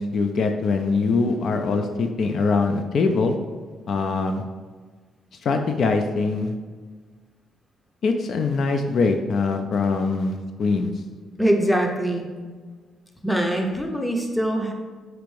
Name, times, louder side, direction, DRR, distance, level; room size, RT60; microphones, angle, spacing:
voice 1, 0.0-3.4 3.9-4.4 5.4-6.5 8.0-10.9, left 4 dB, 60° left, 5 dB, 0.3 m, -23 dB
voice 2, 11.4-12.3 13.2-14.7, right 1 dB, 5° left, 2 dB, 0.6 m, -23 dB
4.3 x 2.5 x 3.2 m, 1.5 s
cardioid pair, 90°, 0 cm